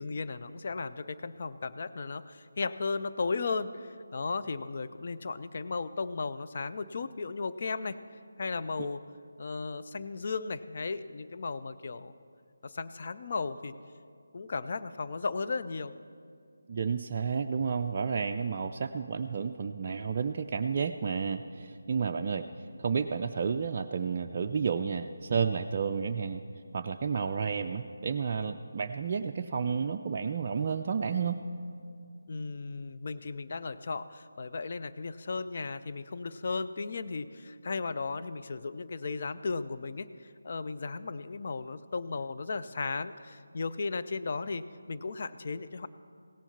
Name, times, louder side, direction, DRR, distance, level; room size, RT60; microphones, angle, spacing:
voice 1, 0.0-8.0 8.4-9.0 9.4-12.1 12.6-13.8 14.3-15.9 32.3-45.9, left 4 dB, 45° left, 11 dB, 0.4 m, -35 dB
voice 2, 16.7-22.5 22.8-26.4 26.7-31.4, right 6 dB, 35° right, 3 dB, 0.3 m, -31 dB
16.5 x 7.0 x 5.7 m, 2.3 s
figure-of-eight pair, 160°, 0 cm